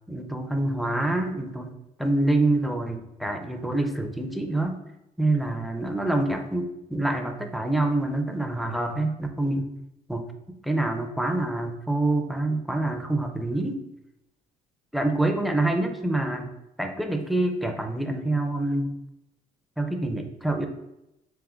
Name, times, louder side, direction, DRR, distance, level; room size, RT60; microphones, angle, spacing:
voice 1, 0.1-4.8 5.2-9.7 10.1-13.8 14.9-16.5 16.8-18.9 19.8-20.7, right 2 dB, ahead, 6 dB, 0.4 m, -26 dB
3.5 x 3.5 x 3.6 m, 0.88 s
cardioid pair, 110°, 17 cm